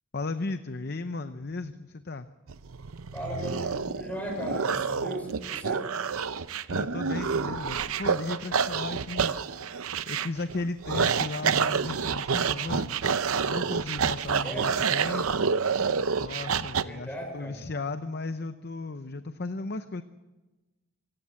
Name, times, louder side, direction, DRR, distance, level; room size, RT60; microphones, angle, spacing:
voice 1, 0.1-2.3 6.7-12.9 13.4-15.3 16.2-20.0, left 3 dB, 45° left, 10 dB, 0.7 m, -35 dB
sound 1, 2.5-16.8, right 6 dB, 75° right, 0.7 m, -28 dB
voice 2, 3.1-5.9 14.4-14.8 16.8-17.6, equal, 5° left, 2 dB, 5.8 m, -37 dB
26.0 x 16.5 x 7.6 m, 1.1 s
head